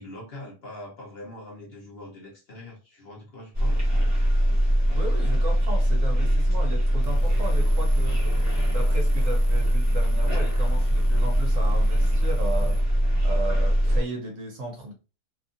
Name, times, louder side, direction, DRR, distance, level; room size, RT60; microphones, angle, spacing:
voice 1, 0.0-4.0, left 1 dB, 50° left, 0.8 m, -42 dB
sound 1, 3.5-14.0, equal, 20° right, 0.4 m, -22 dB
voice 2, 4.9-8.2 8.7-12.8 13.2-14.9, right 2 dB, 65° right, 0.9 m, -35 dB
sound 2, 7.0-12.8, equal, 80° left, 1.2 m, -40 dB
2.7 x 2.4 x 2.5 m
omnidirectional pair, 1.7 m